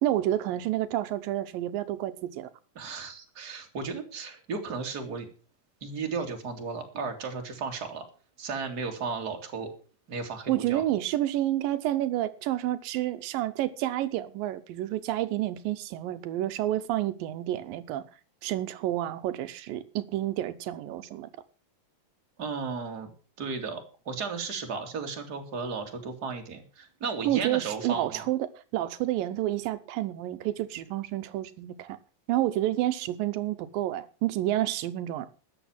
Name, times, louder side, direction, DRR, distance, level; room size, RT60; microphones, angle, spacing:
voice 1, 0.0-2.5 10.5-18.0 18.4-21.3 27.3-32.0 32.3-35.3, right 14 dB, 85° right, 2.5 m, -29 dB
voice 2, 2.7-5.3 5.8-8.0 8.4-9.7 10.1-10.8 22.4-23.1 23.4-28.3, right 5 dB, 30° right, 2.7 m, -34 dB
13.0 x 9.1 x 7.2 m
omnidirectional pair, 3.9 m